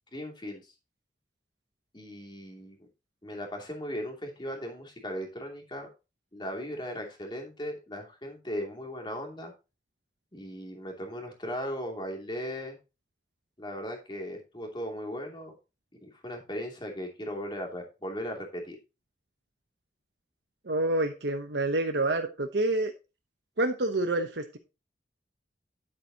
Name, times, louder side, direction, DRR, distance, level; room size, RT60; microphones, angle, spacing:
voice 1, 0.1-0.6 1.9-2.9 3.2-5.9 6.3-9.5 10.3-12.8 13.6-15.5 16.0-18.8, equal, 25° left, 2 dB, 2.7 m, -37 dB
voice 2, 20.7-22.9 23.6-24.6, right 2 dB, 70° right, 5 dB, 1.0 m, -28 dB
10.0 x 8.0 x 2.9 m, 0.28 s
head